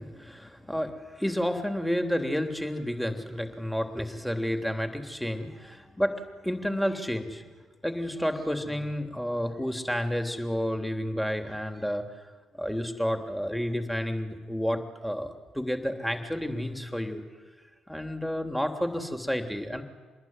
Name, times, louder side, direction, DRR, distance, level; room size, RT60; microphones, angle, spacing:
voice 1, 0.0-7.5 7.8-12.1 12.5-17.2 17.9-19.8, equal, 5° left, 6 dB, 3.3 m, -30 dB
26.5 x 21.0 x 9.6 m, 1.4 s
figure-of-eight pair, 45°, 0 cm